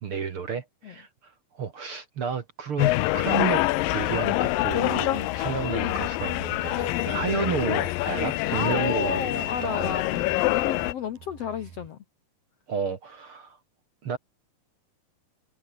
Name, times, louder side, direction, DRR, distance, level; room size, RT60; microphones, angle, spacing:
voice 1, 0.0-3.6 3.9-10.0 12.7-13.6 14.0-14.2, right 6 dB, 50° right, 2.0 m, -31 dB
sound 1, 2.8-10.9, left 19 dB, 85° left, 2.3 m, -26 dB
sound 2, 3.9-11.9, right 9 dB, 65° right, 3.7 m, -49 dB
voice 2, 6.9-7.5 8.3-12.0, left 8 dB, 60° left, 1.7 m, -32 dB
omnidirectional pair, 4.0 m